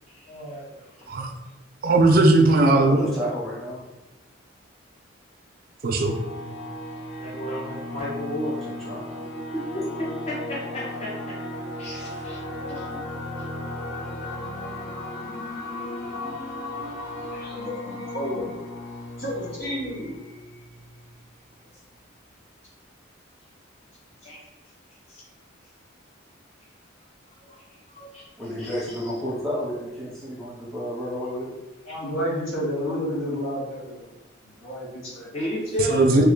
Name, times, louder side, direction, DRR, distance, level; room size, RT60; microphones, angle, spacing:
voice 1, 0.3-0.8 31.9-34.0 34.6-35.3, equal, 90° left, -5 dB, 1.2 m, -30 dB
voice 2, 1.8-3.1 5.8-6.2 35.9-36.2, right 2 dB, 45° right, 3 dB, 0.4 m, -18 dB
voice 3, 2.9-3.8 8.6-9.0 28.4-31.5, equal, ahead, -7 dB, 0.8 m, -31 dB
sound 1, 6.0-21.3, left 1 dB, 65° left, 1.4 m, -36 dB
voice 4, 7.2-8.6 9.5-11.4 11.8-13.0 24.2-24.4 25.1-25.2 28.1-28.3 28.6-28.7 35.3-36.3, equal, 30° left, -6 dB, 0.6 m, -32 dB
voice 5, 17.3-18.5 19.2-20.1 28.0-28.1, equal, 50° left, -6 dB, 1.2 m, -32 dB
3.2 x 2.2 x 3.7 m, 1.0 s
head